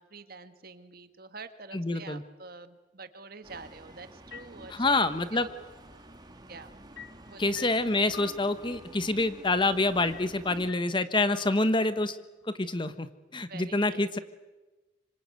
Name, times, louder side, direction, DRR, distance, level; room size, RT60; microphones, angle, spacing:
voice 1, 0.0-5.5 6.4-6.8 7.3-7.7 13.5-14.2, right 4 dB, 50° right, 10 dB, 1.6 m, -47 dB
voice 2, 1.7-2.2 4.7-5.5 7.4-12.2 12.6-13.1 13.3-14.2, left 2 dB, 25° left, 12 dB, 1.1 m, -27 dB
sound 1, 3.4-10.7, right 1 dB, 20° right, 2.3 m, -50 dB
sound 2, 3.9-4.1 4.3-6.2 7.0-9.0 10.1-10.3 10.7-12.0, left 5 dB, 65° left, 2.0 m, -48 dB
26.5 x 25.5 x 8.3 m, 1.2 s
head